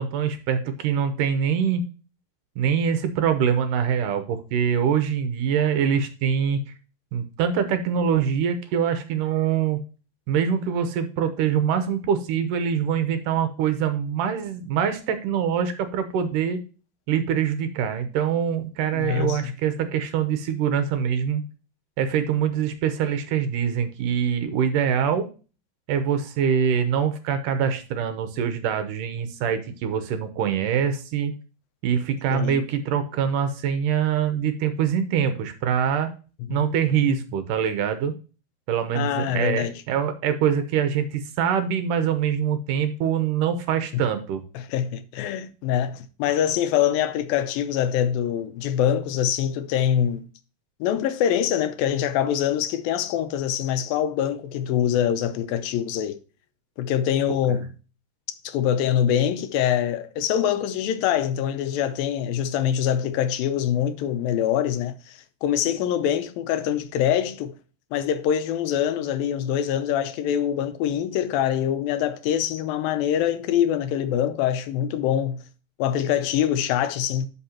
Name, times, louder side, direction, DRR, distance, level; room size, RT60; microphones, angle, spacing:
voice 1, 0.0-1.9 2.6-6.6 7.1-9.8 10.3-16.6 17.1-21.4 22.0-25.3 25.9-31.3 31.8-36.1 36.5-38.1 38.7-44.4 57.3-57.6, right 8 dB, 70° right, 2.3 m, -24 dB
voice 2, 18.9-19.5 32.3-32.6 36.5-36.6 38.9-39.8 43.9-44.0 44.6-50.2 50.8-56.2 56.8-57.7 58.4-67.5 67.9-75.4 75.8-77.3, left 10 dB, 80° left, 2.4 m, -24 dB
12.0 x 5.6 x 2.9 m
omnidirectional pair, 4.2 m